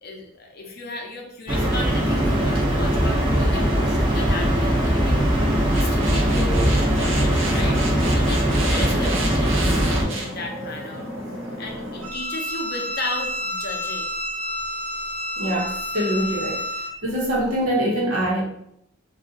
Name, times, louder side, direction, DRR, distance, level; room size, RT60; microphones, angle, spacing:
voice 1, 0.0-5.2 5.7-7.8 8.1-11.1 11.6-14.1, left 2 dB, 45° left, 1 dB, 0.6 m, -34 dB
sound 1, 1.5-10.0, equal, 25° right, 0.7 m, -20 dB
sound 2, 5.5-12.1, right 1 dB, 60° right, 0.7 m, -31 dB
Bowed string instrument, 12.0-16.9, left 1 dB, 40° right, 1.1 m, -29 dB
voice 2, 15.4-16.6 17.0-18.4, equal, 80° right, -3 dB, 1.0 m, -24 dB
2.7 x 2.4 x 3.6 m, 0.75 s
head